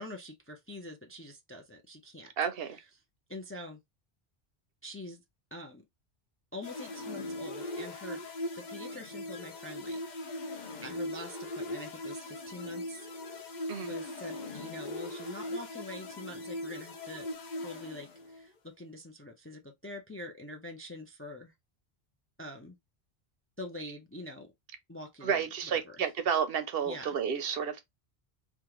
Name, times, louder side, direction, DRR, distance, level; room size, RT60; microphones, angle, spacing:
voice 1, 0.0-2.3 2.7-2.8 3.3-3.8 4.8-5.2 5.5-5.8 6.5-8.2 8.6-10.5 10.8-13.1 13.8-17.3 17.6-21.5 22.4-22.8 23.6-24.5 24.9-26.0 26.8-27.2, left 1 dB, 20° left, 0.4 m, -45 dB
voice 2, 2.4-2.8 13.7-13.9 25.2-27.8, right 7 dB, 70° right, 0.8 m, -31 dB
sound 1, 6.6-18.5, left 1 dB, 50° left, 0.7 m, -40 dB
3.6 x 2.4 x 2.9 m
omnidirectional pair, 1.0 m